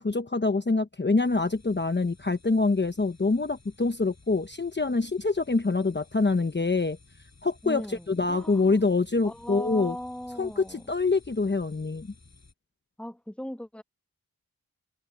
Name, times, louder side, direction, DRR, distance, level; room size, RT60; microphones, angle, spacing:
voice 1, 0.0-7.0 7.4-10.0 10.4-12.1, left 3 dB, 30° left, 1.0 m, -25 dB
sound 1, 1.2-12.5, left 3 dB, 45° left, 6.9 m, -56 dB
voice 2, 7.6-8.8 9.2-10.8 13.0-13.8, equal, 5° left, 1.5 m, -38 dB
wide cardioid pair, 60°, 37 cm